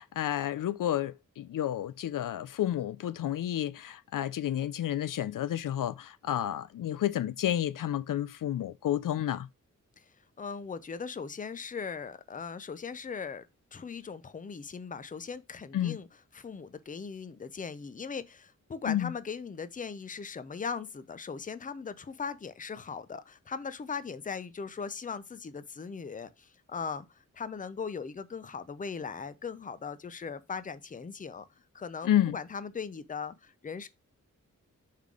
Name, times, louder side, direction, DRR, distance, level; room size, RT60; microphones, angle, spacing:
voice 1, 0.0-9.5 15.7-16.0 18.9-19.1 32.0-32.4, left 11 dB, 85° left, 0.5 m, -30 dB
voice 2, 10.4-13.5 13.7-16.1 16.3-27.1 27.3-31.5 31.7-33.9, left 5 dB, 25° left, 0.5 m, -39 dB
5.7 x 3.7 x 4.7 m
wide cardioid pair, 150°, 31 cm